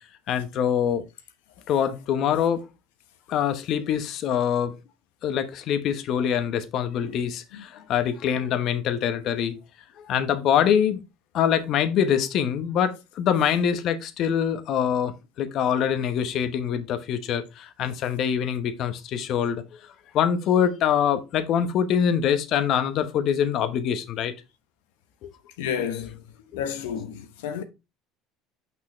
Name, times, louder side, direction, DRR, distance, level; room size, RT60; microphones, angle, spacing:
voice 1, 0.3-1.0 1.7-2.7 3.3-4.8 5.2-9.6 10.0-11.0 11.3-19.6 20.1-24.3 25.2-25.3 26.5-26.6, left 8 dB, 60° left, 1.1 m, -24 dB
voice 2, 25.6-26.2 26.5-27.6, left 8 dB, 85° left, 1.0 m, -31 dB
6.3 x 5.5 x 3.1 m
supercardioid pair, 85°, 0 cm